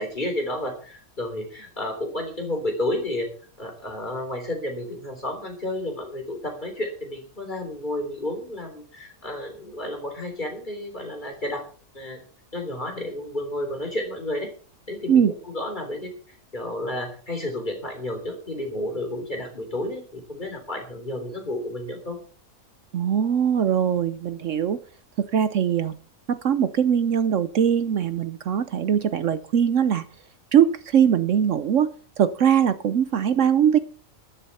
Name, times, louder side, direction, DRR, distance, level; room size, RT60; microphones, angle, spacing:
voice 1, 0.0-3.3 3.6-11.6 11.9-12.2 12.5-14.5 14.9-22.2, left 1 dB, 35° left, 4 dB, 3.7 m, -31 dB
voice 2, 22.9-24.8 25.2-25.9 26.3-30.0 30.5-33.8, right 8 dB, 65° right, 13 dB, 1.0 m, -21 dB
14.0 x 12.0 x 4.3 m, 0.41 s
omnidirectional pair, 1.5 m